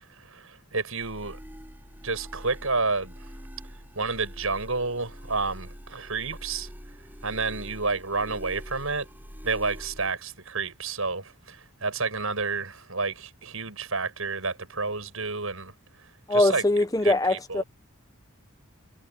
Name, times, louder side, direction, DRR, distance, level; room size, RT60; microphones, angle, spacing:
voice 1, 0.2-1.4 2.0-3.3 4.0-6.7 7.2-9.1 9.4-15.7 16.3-16.6 17.0-17.6, right 4 dB, 70° right, 6.9 m, -30 dB
sound 1, 1.0-10.1, equal, 10° right, 7.8 m, -44 dB
voice 2, 16.3-17.6, left 2 dB, 15° left, 1.0 m, -22 dB
head